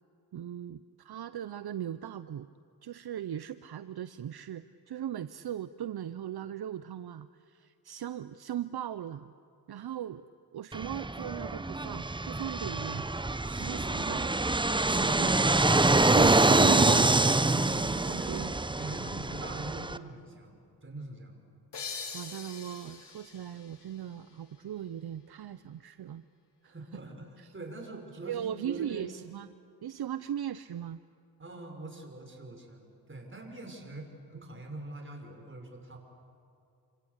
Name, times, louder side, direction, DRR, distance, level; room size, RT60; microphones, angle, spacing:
voice 1, 0.3-2.5 2.8-9.3 9.7-10.3 10.5-13.1 13.6-14.3 14.9-15.4 16.1-18.5 22.1-26.2 26.6-27.0 27.4-27.5 28.2-29.5 29.8-31.0, right 10 dB, 65° right, 13 dB, 0.7 m, -38 dB
Fixed-wing aircraft airplane, 10.7-20.0, right 2 dB, 10° right, 0.7 m, -26 dB
voice 2, 13.4-14.4 14.9-15.4 18.2-21.5 26.6-29.1 31.4-32.8 33.1-36.0, right 2 dB, 30° right, 3 dB, 5.5 m, -44 dB
sound 1, 21.7-25.1, left 5 dB, 75° left, 2.7 m, -44 dB
28.0 x 26.0 x 8.2 m, 2.5 s
cardioid pair, 80°, 42 cm